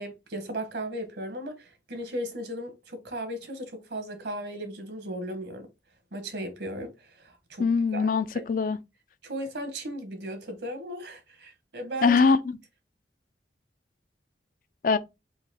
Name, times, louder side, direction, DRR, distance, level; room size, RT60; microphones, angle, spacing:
voice 1, 0.0-5.7 6.1-6.9 7.2-7.7 7.9-8.4 9.2-12.2, right 1 dB, 70° right, 1.2 m, -36 dB
voice 2, 7.6-8.8 12.0-12.6 14.8-15.0, left 4 dB, 50° left, 0.4 m, -22 dB
3.9 x 2.7 x 4.1 m
head